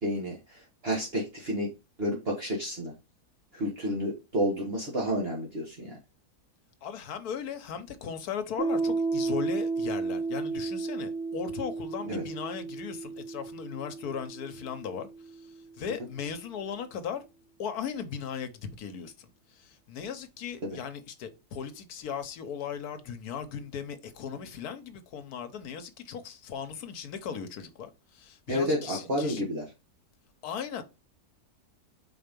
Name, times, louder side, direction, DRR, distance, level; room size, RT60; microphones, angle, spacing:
voice 1, 0.0-1.7 2.0-2.9 3.5-6.0 12.1-12.2 20.6-20.8 28.5-29.6, equal, 40° right, 1.7 m, -30 dB
voice 2, 6.8-17.2 17.6-29.4 30.4-30.8, left 7 dB, 75° left, 1.4 m, -37 dB
Piano, 8.6-15.8, right 4 dB, 15° left, 2.0 m, -33 dB
4.5 x 4.5 x 5.2 m
omnidirectional pair, 1.6 m